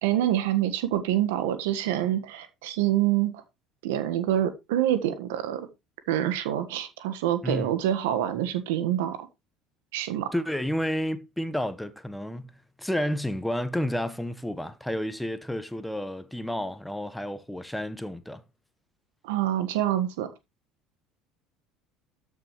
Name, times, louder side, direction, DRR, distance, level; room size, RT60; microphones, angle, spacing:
voice 1, 0.0-3.4 3.8-5.7 6.1-9.3 9.9-10.3 19.2-20.3, right 12 dB, 75° right, 1.4 m, -26 dB
voice 2, 10.3-12.5 12.8-18.4, equal, 5° left, 1.1 m, -31 dB
13.0 x 6.1 x 3.1 m
hypercardioid pair, 70°, 0 cm